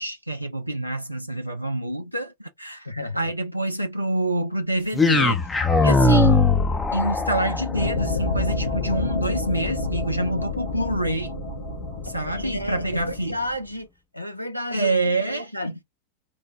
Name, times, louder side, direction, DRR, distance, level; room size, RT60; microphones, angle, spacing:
voice 1, 0.0-2.9 3.2-5.4 5.8-6.6 6.9-11.3 12.0-13.4 14.7-15.7, right 1 dB, 85° right, 0.4 m, -27 dB
voice 2, 2.8-3.3 12.1-13.9 14.1-15.8, left 1 dB, 90° left, 0.6 m, -32 dB
sound 1, 4.9-13.1, left 3 dB, 10° left, 0.6 m, -23 dB
sound 2, 7.7-13.3, left 3 dB, 65° left, 1.0 m, -29 dB
3.1 x 2.1 x 3.5 m
figure-of-eight pair, 90°, 0 cm